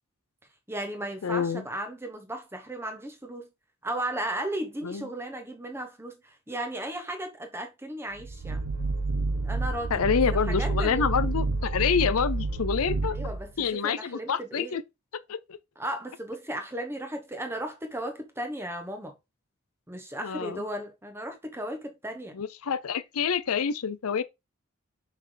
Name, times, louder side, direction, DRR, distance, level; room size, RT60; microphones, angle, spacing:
voice 1, 0.7-3.5 3.8-8.6 9.4-10.0 10.3-11.1 13.1-14.8 15.8-19.1 19.9-22.4, right 1 dB, 10° right, 1.0 m, -35 dB
voice 2, 1.2-1.7 4.8-5.1 9.9-13.2 13.6-14.8 15.3-15.6 20.2-20.6 22.3-24.2, left 6 dB, 75° left, 0.5 m, -27 dB
sound 1, 8.1-13.6, right 3 dB, 85° right, 1.2 m, -29 dB
5.5 x 4.8 x 3.8 m
head